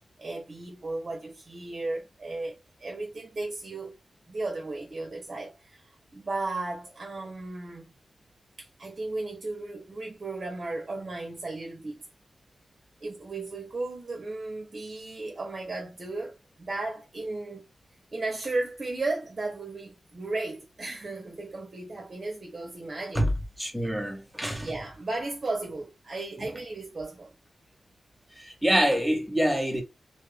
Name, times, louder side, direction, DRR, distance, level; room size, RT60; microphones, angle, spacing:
voice 1, 0.2-3.9 4.3-5.8 6.1-7.9 8.6-12.0 13.0-17.6 18.1-23.3 24.5-27.3, right 2 dB, 40° right, 0.8 m, -35 dB
voice 2, 23.6-24.7 28.4-29.8, equal, 5° right, 0.8 m, -26 dB
2.6 x 2.5 x 3.3 m
wide cardioid pair, 130°, 0 cm